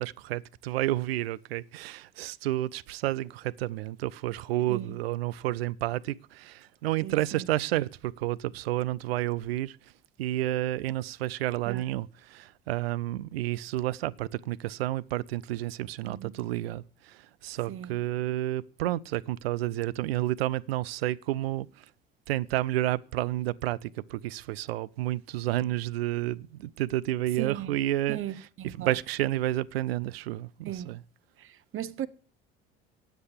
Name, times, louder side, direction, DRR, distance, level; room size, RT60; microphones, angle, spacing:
voice 1, 0.0-9.8 10.2-21.8 22.3-28.2 28.8-31.0, right 15 dB, 80° right, 0.5 m, -30 dB
voice 2, 4.7-5.0 7.0-7.5 11.7-12.0 16.0-16.3 17.7-18.0 27.4-27.7 28.1-29.0 30.7-31.0 31.4-32.1, right 11 dB, 45° right, 0.9 m, -37 dB
9.4 x 8.1 x 8.6 m
hypercardioid pair, 60°, 30 cm